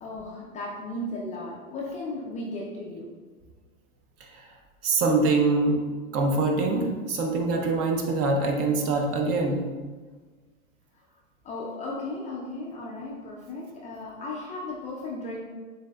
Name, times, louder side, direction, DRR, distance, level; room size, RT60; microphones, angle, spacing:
voice 1, 0.0-3.1 11.4-15.4, left 2 dB, 20° left, -4 dB, 0.5 m, -35 dB
voice 2, 4.8-5.8 6.1-9.6, right 3 dB, 35° right, 2 dB, 0.7 m, -24 dB
7.3 x 2.6 x 2.3 m, 1.4 s
hypercardioid pair, 105°, 41 cm